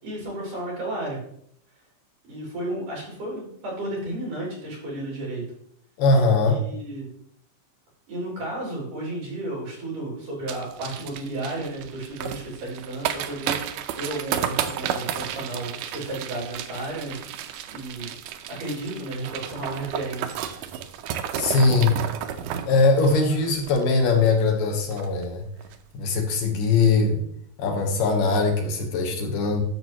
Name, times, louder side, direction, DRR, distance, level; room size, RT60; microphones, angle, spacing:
voice 1, 0.0-1.2 2.3-5.4 6.5-7.1 8.1-13.6 13.8-17.2 17.7-18.1 18.5-20.3, right 2 dB, 65° right, -4 dB, 5.2 m, -33 dB
voice 2, 6.0-6.6 21.4-21.9 22.7-25.5 25.9-27.2 27.6-29.6, left 3 dB, 75° left, 3 dB, 2.8 m, -21 dB
sound 1, 10.5-24.3 24.6-24.7 24.9-25.2 25.6-25.8, right 9 dB, 80° right, 2.1 m, -32 dB
11.0 x 6.9 x 3.0 m, 0.68 s
omnidirectional pair, 4.0 m